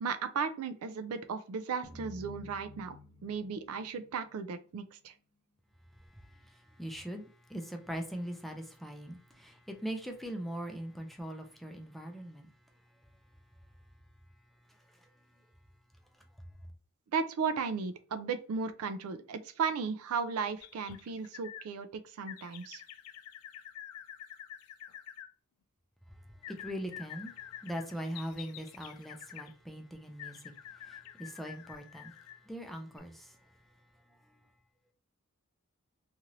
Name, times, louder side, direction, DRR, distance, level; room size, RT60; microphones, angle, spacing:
voice 1, 0.0-3.0 3.2-5.1 17.1-22.8, right 5 dB, 75° right, 0.4 m, -35 dB
sound 1, 1.8-5.0, left 1 dB, 15° left, 0.8 m, -52 dB
voice 2, 6.1-12.5 14.7-15.1 26.4-32.2 32.4-33.4, equal, ahead, 0.4 m, -41 dB
sound 2, 20.6-21.7 22.3-25.3 26.4-29.5 30.2-32.4 32.9-33.0, left 11 dB, 75° left, 0.3 m, -48 dB
2.7 x 2.5 x 2.9 m
head